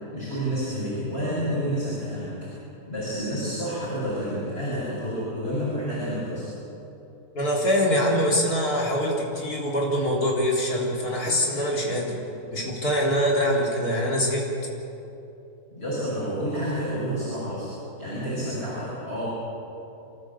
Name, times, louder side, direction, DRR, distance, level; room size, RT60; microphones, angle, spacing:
voice 1, 0.1-2.5 2.9-6.5 15.7-17.7 18.0-19.2, equal, 40° left, -9 dB, 7.2 m, -29 dB
voice 2, 7.3-12.1 12.5-14.5, equal, 70° left, -3 dB, 4.2 m, -24 dB
27.5 x 14.5 x 8.5 m, 2.9 s
omnidirectional pair, 1.7 m